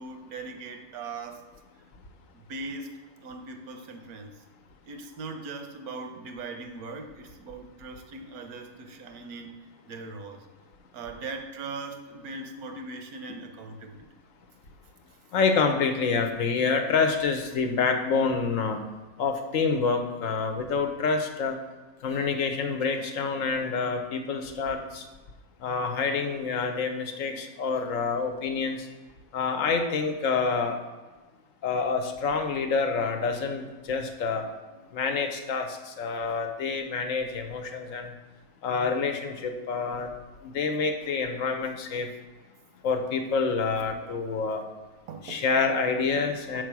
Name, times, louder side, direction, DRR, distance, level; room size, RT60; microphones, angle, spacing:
voice 1, 0.0-1.4 2.3-2.9 3.2-4.3 4.8-9.6 9.9-10.5 10.9-14.1 34.7-34.8 36.3-36.4 43.8-44.2 45.1-45.4, right 3 dB, 90° right, 6 dB, 1.2 m, -40 dB
voice 2, 15.3-18.8 19.2-21.5 22.0-25.0 25.6-28.9 29.3-30.8 31.6-34.5 34.9-38.1 38.6-40.1 40.4-42.1 42.8-44.6 45.2-46.6, left 5 dB, 70° left, 6 dB, 1.0 m, -27 dB
4.7 x 4.6 x 6.0 m, 1.2 s
omnidirectional pair, 1.5 m